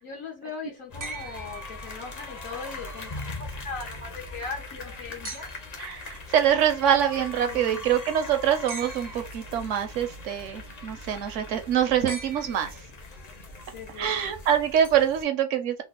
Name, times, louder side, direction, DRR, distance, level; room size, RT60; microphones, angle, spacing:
voice 1, 0.0-5.5 7.4-7.9 12.4-12.6 13.7-14.3, left 4 dB, 85° left, 1.4 m, -39 dB
sound 1, 0.9-15.2, left 2 dB, 40° left, 0.7 m, -41 dB
sound 2, 1.0-2.4 5.2-5.9 8.7-9.5 12.1-13.1 14.7-14.8, right 3 dB, 30° right, 0.3 m, -41 dB
voice 2, 5.8-12.7 14.0-15.8, right 9 dB, 75° right, 0.9 m, -25 dB
3.2 x 2.0 x 3.6 m
omnidirectional pair, 1.4 m